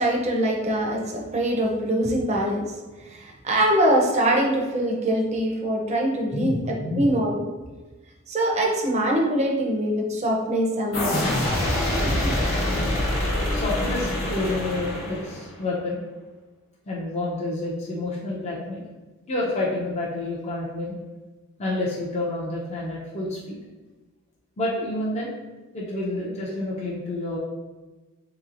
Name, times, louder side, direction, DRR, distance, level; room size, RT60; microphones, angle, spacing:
voice 1, 0.0-2.7 3.1-7.4 8.3-11.2 12.1-12.3, right 1 dB, 35° right, 0 dB, 0.5 m, -23 dB
voice 2, 6.3-7.1 13.5-16.0 16.9-18.9 19.3-20.9 21.6-23.6 24.6-25.3 25.7-27.4, left 2 dB, 30° left, -5 dB, 0.5 m, -29 dB
sound 1, 10.9-15.6, left 1 dB, 70° left, 0.9 m, -25 dB
3.7 x 2.9 x 2.4 m, 1.2 s
head